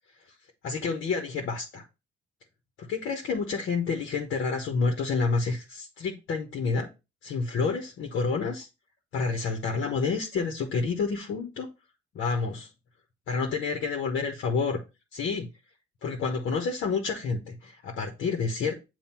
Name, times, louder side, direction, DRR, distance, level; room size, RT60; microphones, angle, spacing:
voice 1, 0.6-1.8 2.8-6.9 7.2-8.7 9.1-11.7 12.1-12.7 13.3-14.8 15.1-15.5 16.0-18.7, left 4 dB, 75° left, 2 dB, 1.2 m, -29 dB
7.3 x 2.7 x 5.8 m, 0.27 s
cardioid pair, 90°, 20 cm